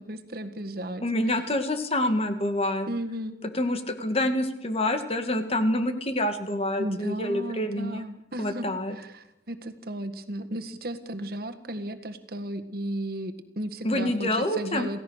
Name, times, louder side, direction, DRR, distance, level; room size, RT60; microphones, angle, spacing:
voice 1, 0.0-1.5 2.9-3.4 6.8-15.0, right 1 dB, 55° right, 7 dB, 1.8 m, -35 dB
voice 2, 1.0-2.9 3.5-8.1 8.4-8.9 13.8-14.9, left 1 dB, 35° left, 7 dB, 2.1 m, -27 dB
28.0 x 16.5 x 6.5 m, 0.87 s
head